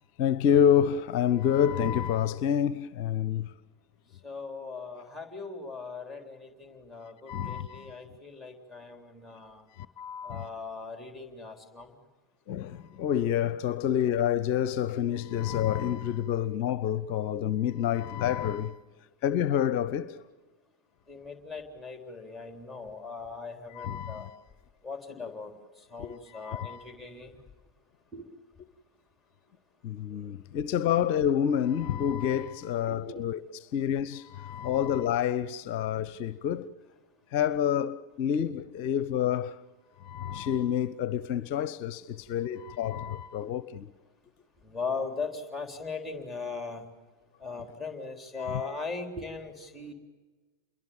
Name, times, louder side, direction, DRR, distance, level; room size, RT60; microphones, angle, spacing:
voice 1, 0.2-3.5 7.3-8.0 9.7-10.5 12.5-18.8 19.2-20.2 23.7-24.4 26.0-26.8 29.8-33.4 33.7-36.7 37.3-39.6 40.0-43.9 48.4-48.6, left 9 dB, 45° left, 0.7 m, -28 dB
voice 2, 4.2-9.6 10.2-11.9 21.1-24.3 24.8-25.5 25.9-27.4 28.1-28.3 32.9-33.2 43.4-43.5 44.6-46.8 47.4-49.9, left 4 dB, ahead, 3.7 m, -39 dB
28.5 x 22.5 x 7.1 m
figure-of-eight pair, 90°, 0 cm